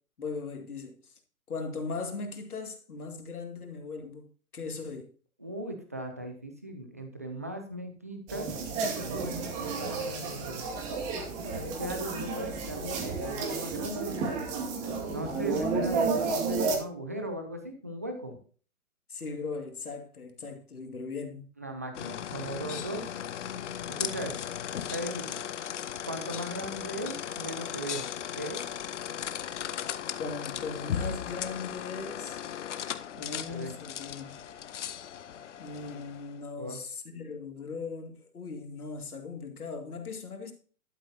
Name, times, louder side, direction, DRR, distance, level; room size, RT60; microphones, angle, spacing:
voice 1, 0.2-1.2 1.5-5.1 19.1-21.5 30.2-32.4 33.1-34.4 35.6-40.5, left 4 dB, 80° left, 2.2 m, -39 dB
voice 2, 5.4-10.7 11.5-14.2 15.1-18.4 21.6-23.1 23.9-24.5 24.9-25.4 26.1-28.0 28.4-28.6 33.2-33.7 35.9-36.0 36.6-36.8, right 1 dB, 10° right, 0.4 m, -38 dB
sound 1, 8.3-16.8, right 4 dB, 30° right, 2.1 m, -32 dB
sound 2, 21.9-36.4, left 9 dB, 55° left, 0.8 m, -37 dB
11.5 x 8.3 x 2.7 m
hypercardioid pair, 140°, 43 cm